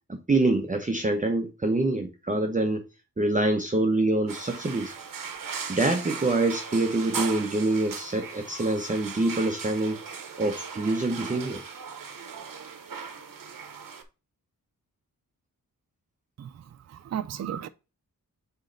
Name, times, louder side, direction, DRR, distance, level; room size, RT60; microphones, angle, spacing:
voice 1, 0.1-2.8 3.2-4.9 5.7-10.0 10.4-11.6, right 2 dB, 20° right, 0.8 m, -25 dB
sound 1, 4.3-14.0, right 5 dB, 70° right, 1.1 m, -38 dB
voice 2, 16.4-17.7, right 9 dB, 50° right, 0.5 m, -35 dB
8.2 x 3.1 x 3.8 m
wide cardioid pair, 135°, 35 cm